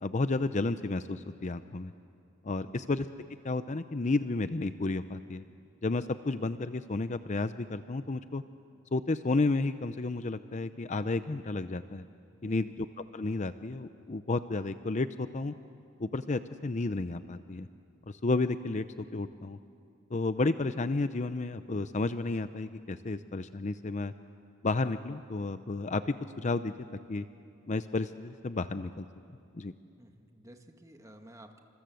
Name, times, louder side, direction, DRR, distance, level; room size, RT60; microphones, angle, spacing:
voice 1, 0.0-1.9 2.4-3.1 3.4-5.4 5.8-8.4 8.9-12.0 12.4-12.9 13.1-15.5 16.0-17.7 18.1-19.6 20.1-24.1 24.6-26.7 27.1-27.2 27.7-29.1 29.5-29.7, left 3 dB, 35° left, 12 dB, 0.6 m, -32 dB
voice 2, 12.4-12.7 30.0-31.6, right 1 dB, 15° right, 4 dB, 1.8 m, -53 dB
28.0 x 27.0 x 7.8 m, 2.5 s
head